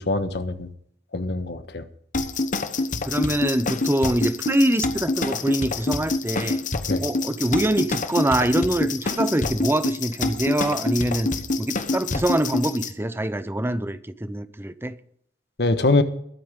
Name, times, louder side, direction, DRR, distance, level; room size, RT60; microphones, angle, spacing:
voice 1, 0.1-0.7 1.1-1.9 6.9-7.0 15.6-16.0, left 2 dB, 70° left, 1.3 m, -23 dB
sound 1, 2.1-12.9, left 3 dB, 50° left, 1.1 m, -26 dB
voice 2, 3.0-6.6 7.0-11.3 11.6-15.0, right 1 dB, 15° right, 0.7 m, -24 dB
21.0 x 8.4 x 3.8 m
head